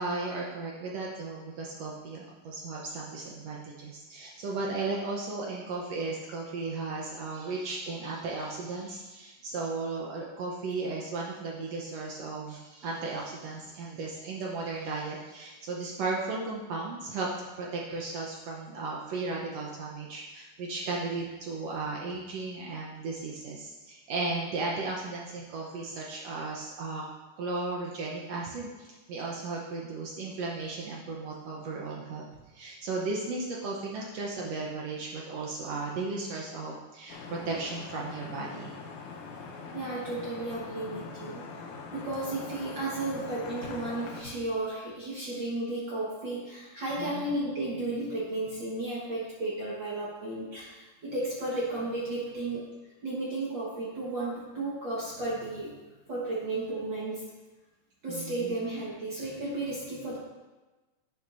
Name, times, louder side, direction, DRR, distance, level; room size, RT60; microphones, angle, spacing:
voice 1, 0.0-17.3 17.6-27.1 27.4-32.2 32.5-38.7 47.0-47.2 58.1-58.6, right 3 dB, 85° right, -2 dB, 1.4 m, -35 dB
Vehicle horn car horn honking / Traffic noise roadway noise, 37.1-44.2, left 4 dB, 70° left, 2.0 m, -42 dB
voice 2, 39.7-52.6 53.0-55.7 56.1-57.2 58.0-60.2, right 2 dB, 55° right, -6 dB, 1.4 m, -34 dB
10.5 x 10.0 x 2.6 m, 1.2 s
omnidirectional pair, 4.3 m